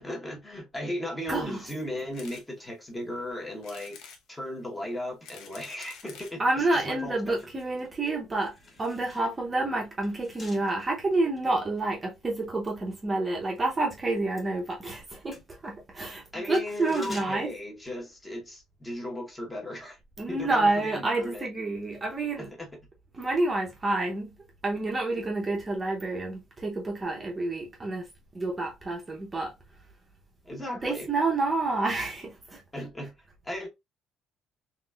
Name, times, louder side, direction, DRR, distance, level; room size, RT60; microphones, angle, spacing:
voice 1, 0.0-7.3 16.3-20.0 20.3-21.5 22.4-22.7 30.4-31.1 32.7-33.1 33.4-33.7, left 1 dB, 10° left, 1.0 m, -36 dB
voice 2, 1.3-1.6 6.4-17.5 20.2-22.5 23.1-24.4 24.6-28.1 28.3-29.5 30.8-32.6, right 2 dB, 20° right, 0.7 m, -29 dB
sound 1, 2.1-2.5 2.9-3.0 3.6-4.2 5.0-6.4 7.2-7.3 7.5-7.6 7.8-7.9, left 6 dB, 75° left, 0.8 m, -48 dB
sound 2, 7.1-13.7 13.9-18.6 18.9-19.0, left 2 dB, 25° left, 1.5 m, -51 dB
3.9 x 3.1 x 2.3 m
cardioid pair, 160°, 0 cm